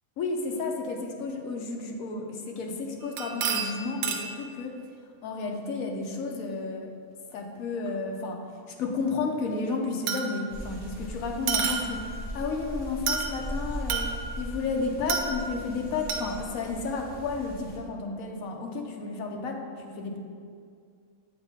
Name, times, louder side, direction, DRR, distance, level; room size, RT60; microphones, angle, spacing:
voice 1, 0.2-4.8 5.2-6.9 7.3-8.4 8.8-20.2, left 4 dB, 75° left, 2 dB, 1.1 m, -32 dB
sound 1, 3.0-4.4 7.9-8.0 10.1-10.6 11.5-12.2 13.1-13.5 13.9-14.5 15.1-15.7 16.1-16.3, right 6 dB, 85° right, 1.1 m, -30 dB
gu zhong gong yuan rain, 10.5-17.8, equal, 5° left, 1.1 m, -39 dB
8.1 x 3.7 x 3.5 m, 2.2 s
omnidirectional pair, 1.5 m